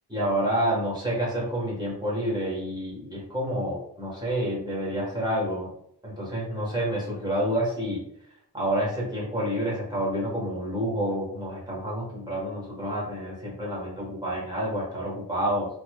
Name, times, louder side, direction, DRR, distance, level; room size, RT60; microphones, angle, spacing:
voice 1, 0.1-5.7 6.0-8.0 8.5-15.7, equal, 10° right, -5 dB, 1.4 m, -28 dB
4.0 x 3.1 x 2.3 m, 0.71 s
wide cardioid pair, 125°, 42 cm